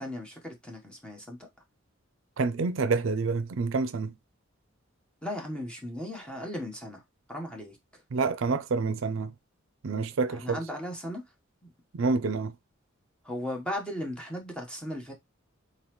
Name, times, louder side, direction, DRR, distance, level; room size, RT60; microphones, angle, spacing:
voice 1, 0.0-1.4 5.2-7.0 7.3-7.8 10.3-11.2 13.2-15.1, left 1 dB, 5° left, 1.1 m, -36 dB
voice 2, 2.4-4.1 8.1-9.3 9.8-10.6 11.9-12.5, right 4 dB, 70° right, 0.5 m, -28 dB
4.0 x 3.8 x 3.1 m
head